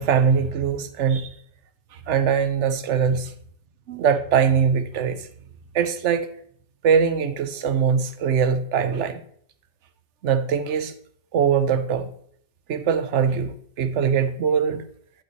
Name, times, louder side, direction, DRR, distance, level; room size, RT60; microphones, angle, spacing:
voice 1, 0.0-1.3 2.1-3.3 3.9-5.3 5.7-6.3 6.8-9.2 10.2-10.9 11.3-12.1 12.7-14.8, right 7 dB, 85° right, 10 dB, 1.0 m, -22 dB
11.5 x 5.4 x 3.1 m, 0.62 s
omnidirectional pair, 1.2 m